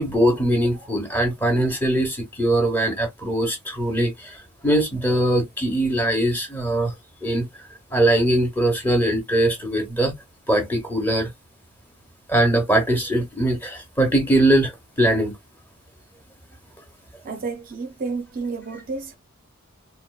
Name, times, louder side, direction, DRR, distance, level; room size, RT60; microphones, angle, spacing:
voice 1, 0.0-4.4 4.6-6.9 7.2-7.4 7.9-10.1 10.5-11.3 12.3-14.7 15.0-15.3, right 1 dB, 10° left, 1.0 m, -21 dB
voice 2, 17.2-19.2, right 4 dB, 40° right, 0.5 m, -30 dB
3.6 x 2.1 x 2.3 m
head